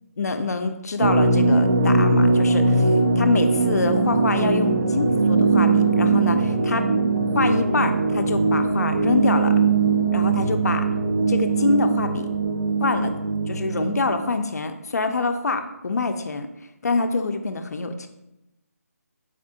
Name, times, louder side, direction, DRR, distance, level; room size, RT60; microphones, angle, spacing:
voice 1, 0.2-2.9 3.2-6.9 7.3-9.5 10.1-10.9 11.3-12.3 12.8-13.2 13.5-16.5 16.8-18.1, left 3 dB, 75° left, 7 dB, 0.4 m, -25 dB
sound 1, 1.0-14.3, right 3 dB, 75° right, 0.4 m, -20 dB
4.2 x 2.6 x 2.6 m, 0.91 s
figure-of-eight pair, 170°, 9 cm